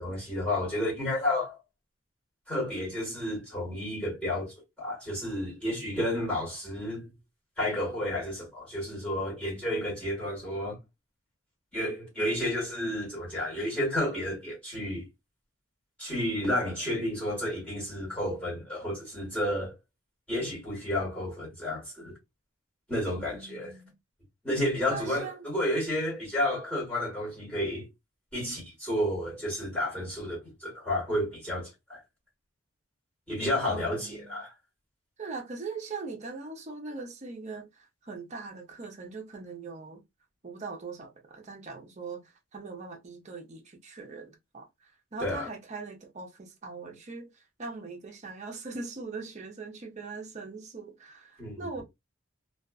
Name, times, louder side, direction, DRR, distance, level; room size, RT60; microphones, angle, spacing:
voice 1, 0.0-1.6 2.5-7.1 7.6-10.8 11.7-15.1 16.0-19.7 20.3-22.2 22.9-23.7 24.4-27.9 28.3-32.0 33.3-34.5 45.2-45.5 51.4-51.8, left 1 dB, 5° left, 1.4 m, -31 dB
voice 2, 23.1-24.0 24.9-25.5 33.6-34.4 35.2-40.0 40.4-47.3 47.6-51.8, right 4 dB, 35° right, 0.6 m, -41 dB
2.4 x 2.3 x 2.3 m
head